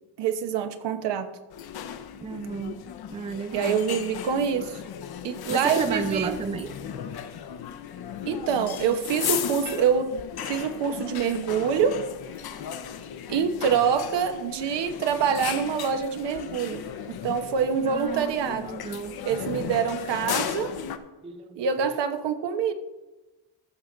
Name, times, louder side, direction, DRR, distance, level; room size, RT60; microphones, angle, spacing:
voice 1, 0.2-1.3 3.5-4.8 5.2-6.4 8.3-10.1 10.4-12.0 13.3-18.7 19.2-20.7 21.6-22.7, right 7 dB, 70° right, 8 dB, 1.1 m, -26 dB
sound 1, 1.5-21.0, left 9 dB, 55° left, 0.9 m, -36 dB
voice 2, 2.2-2.8 3.1-3.8 5.5-6.7 17.9-19.2 21.2-22.0, right 5 dB, 15° right, 10 dB, 0.4 m, -33 dB
14.0 x 6.0 x 3.9 m, 1.1 s
cardioid pair, 100°, 44 cm